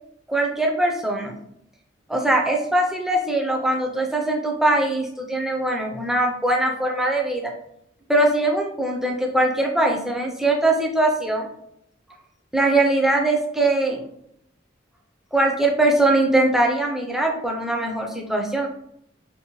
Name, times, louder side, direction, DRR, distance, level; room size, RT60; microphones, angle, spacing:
voice 1, 0.3-1.4 2.1-7.5 8.1-11.5 12.5-14.0 15.3-18.7, right 2 dB, ahead, 1 dB, 0.4 m, -21 dB
2.7 x 2.1 x 2.8 m, 0.73 s
head